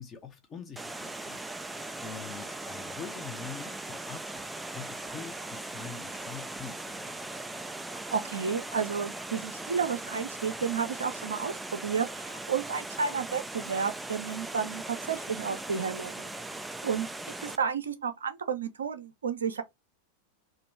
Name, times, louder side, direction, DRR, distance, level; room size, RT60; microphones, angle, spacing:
voice 1, 0.0-1.4 2.0-4.4 4.7-7.3, left 6 dB, 25° left, 0.8 m, -44 dB
Water, 0.8-17.6, right 2 dB, 5° right, 0.3 m, -39 dB
voice 2, 8.1-16.3 16.8-17.1 17.4-19.6, right 6 dB, 65° right, 0.6 m, -31 dB
3.0 x 2.6 x 4.4 m
figure-of-eight pair, 90°, 0 cm